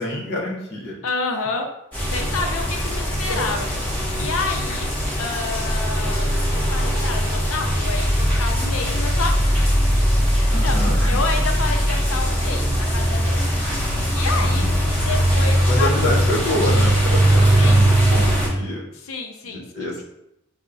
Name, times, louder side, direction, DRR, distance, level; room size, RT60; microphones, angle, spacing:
voice 1, 0.0-1.0 3.3-3.5 10.5-11.2 13.6-13.8 14.2-14.7 15.6-18.8 19.4-20.0, left 1 dB, 55° left, -2 dB, 0.8 m, -27 dB
voice 2, 1.0-1.7 2.1-3.7 4.1-9.5 10.3-10.8 11.1-13.5 14.1-14.7 15.0-15.9 17.6-17.8 19.1-19.6, left 4 dB, 80° left, 4 dB, 0.5 m, -29 dB
sound 1, 1.9-18.5, equal, 10° left, 1.5 m, -20 dB
4.5 x 2.0 x 2.6 m, 0.82 s
head